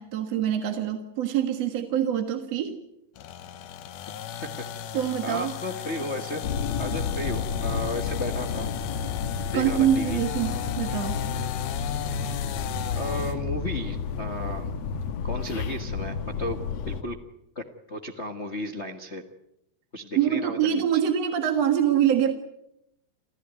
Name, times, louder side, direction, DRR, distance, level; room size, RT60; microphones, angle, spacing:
voice 1, 0.0-2.8 4.9-5.5 9.5-11.2 20.2-22.3, right 9 dB, 60° right, 6 dB, 2.5 m, -25 dB
sound 1, 3.2-13.4, left 9 dB, 85° left, 2.7 m, -36 dB
voice 2, 5.2-6.4 6.8-8.7 9.4-10.2 12.9-14.7 15.2-16.6 16.8-17.2 17.5-19.2 19.9-21.0, left 1 dB, 35° left, 5 dB, 1.1 m, -34 dB
sound 2, 6.4-17.0, left 6 dB, 60° left, 2.3 m, -31 dB
29.5 x 14.5 x 9.3 m, 0.84 s
omnidirectional pair, 3.6 m